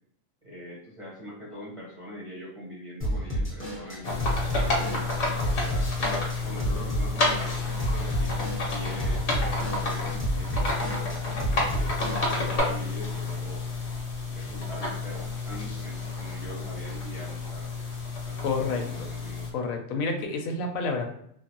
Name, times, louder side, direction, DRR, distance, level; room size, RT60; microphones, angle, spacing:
voice 1, 0.4-5.9 6.4-7.6 7.9-13.6 14.3-17.8 18.3-19.5, equal, 30° right, -5 dB, 0.7 m, -42 dB
Drum kit / Drum, 3.0-12.6, equal, 10° left, 0.8 m, -31 dB
sound 1, 4.0-19.5, left 3 dB, 60° left, 1.0 m, -30 dB
voice 2, 18.4-19.1 19.5-21.1, left 4 dB, 90° left, 4 dB, 1.0 m, -29 dB
3.1 x 2.1 x 2.8 m, 0.69 s
omnidirectional pair, 1.4 m